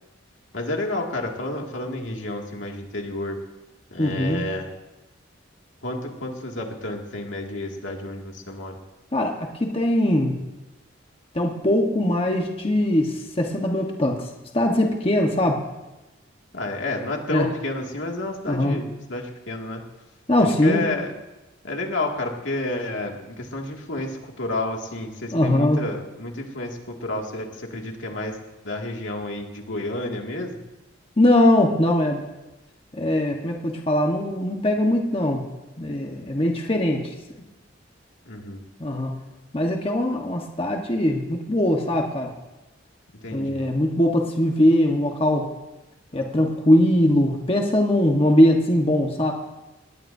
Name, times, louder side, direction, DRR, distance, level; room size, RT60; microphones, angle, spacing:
voice 1, 0.5-3.4 3.9-4.7 5.8-8.8 16.5-19.8 20.6-21.1 21.6-28.4 28.6-30.6 38.3-38.6 43.2-43.6, left 2 dB, 80° left, 1 dB, 2.3 m, -30 dB
voice 2, 4.0-4.4 9.1-10.4 11.3-14.2 14.5-15.6 17.3-17.5 18.5-18.8 20.3-20.8 25.3-25.9 31.2-32.2 33.0-35.4 35.8-37.1 38.8-39.1 39.5-42.3 43.3-45.5 46.1-49.3, left 1 dB, 30° left, 1 dB, 1.3 m, -21 dB
20.5 x 18.0 x 2.7 m, 1.0 s
head